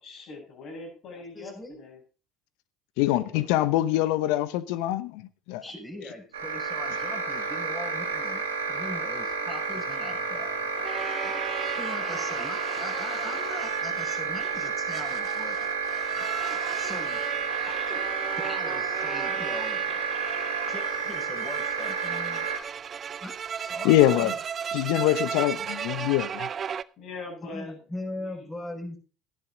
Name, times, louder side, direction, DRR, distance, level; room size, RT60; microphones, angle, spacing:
voice 1, 0.0-2.0 3.2-3.4 5.5-6.1 27.0-27.8 28.2-28.5, left 3 dB, 55° left, 7.7 m, -42 dB
voice 2, 1.1-1.8 5.6-8.4 8.7-10.5 11.2-11.4 11.8-15.6 16.2-17.2 17.6-18.0 18.4-19.9 20.4-22.5 23.2-24.3 27.5-29.0, left 1 dB, 15° left, 6.6 m, -40 dB
voice 3, 3.0-5.6 23.8-24.3 24.7-26.5, left 14 dB, 70° left, 1.0 m, -24 dB
sound 1, 6.3-22.6, right 5 dB, 90° right, 2.3 m, -31 dB
sound 2, 9.1-26.8, right 7 dB, 40° right, 0.5 m, -36 dB
13.5 x 11.0 x 3.9 m
hypercardioid pair, 65°, 0 cm